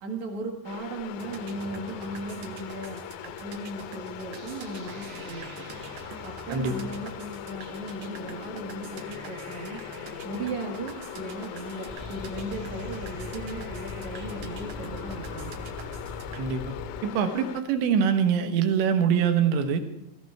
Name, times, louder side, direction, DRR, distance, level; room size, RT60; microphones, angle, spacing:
voice 1, 0.0-3.0 3.4-5.7 6.2-9.8 10.2-15.5, right 1 dB, 55° right, 2 dB, 2.4 m, -37 dB
sound 1, 0.6-17.6, left 12 dB, 85° left, 2.1 m, -40 dB
sound 2, 1.1-16.4, right 6 dB, 70° right, 2.0 m, -44 dB
voice 2, 6.5-6.9 16.4-16.7 17.0-19.8, right 7 dB, 85° right, 6 dB, 3.6 m, -24 dB
sound 3, 11.9-17.0, left 2 dB, 25° right, 1.0 m, -40 dB
17.0 x 15.0 x 4.7 m, 0.79 s
omnidirectional pair, 5.1 m